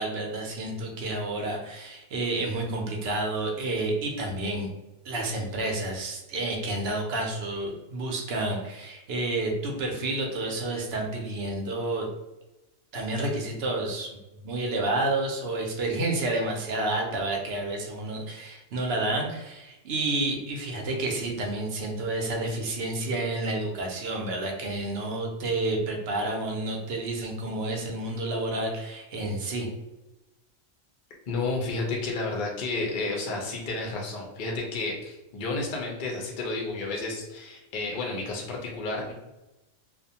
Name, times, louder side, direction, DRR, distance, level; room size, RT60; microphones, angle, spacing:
voice 1, 0.0-4.7 5.0-12.1 12.9-14.1 14.4-29.7, right 2 dB, 65° right, 0 dB, 0.7 m, -30 dB
voice 2, 31.3-39.1, left 3 dB, 60° left, -1 dB, 0.5 m, -31 dB
2.3 x 2.1 x 2.7 m, 1.0 s
omnidirectional pair, 1.4 m